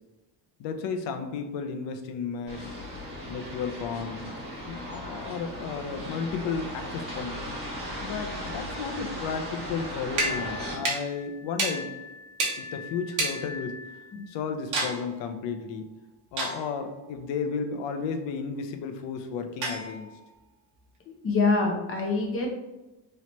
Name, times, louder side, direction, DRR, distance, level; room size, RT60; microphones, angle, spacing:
voice 1, 0.6-2.8 3.3-4.3 4.6-7.4 8.0-11.9 12.6-13.7 14.3-15.9 16.3-20.1, left 5 dB, 85° left, 7 dB, 0.6 m, -33 dB
sound 1, 2.5-10.8, equal, 15° right, 1.4 m, -37 dB
sound 2, 10.1-14.2 14.7-15.0 16.4-16.9 19.6-20.2, right 2 dB, 45° right, 0.9 m, -32 dB
voice 2, 21.1-22.5, left 3 dB, 30° left, 1 dB, 0.6 m, -25 dB
3.1 x 3.0 x 3.0 m, 1.0 s
cardioid pair, 165°, 42 cm